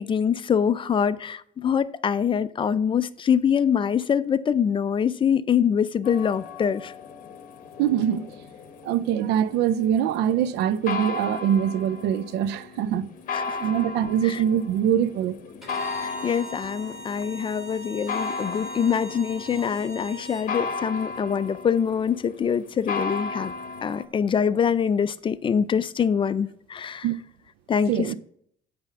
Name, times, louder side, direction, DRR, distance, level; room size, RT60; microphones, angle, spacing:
voice 1, 0.0-6.9 13.3-13.7 14.2-14.4 15.9-23.5 23.8-27.1 27.7-28.2, left 7 dB, 30° left, 0.4 m, -24 dB
sound 1, 6.0-24.0, left 4 dB, 55° left, 0.9 m, -36 dB
voice 2, 7.8-8.2 8.8-13.1 13.6-15.4 27.0-27.2 27.9-28.2, right 9 dB, 85° right, 0.4 m, -23 dB
Bowed string instrument, 15.6-20.5, equal, ahead, 3.5 m, -41 dB
8.9 x 3.5 x 5.7 m
cardioid pair, 110°, 17 cm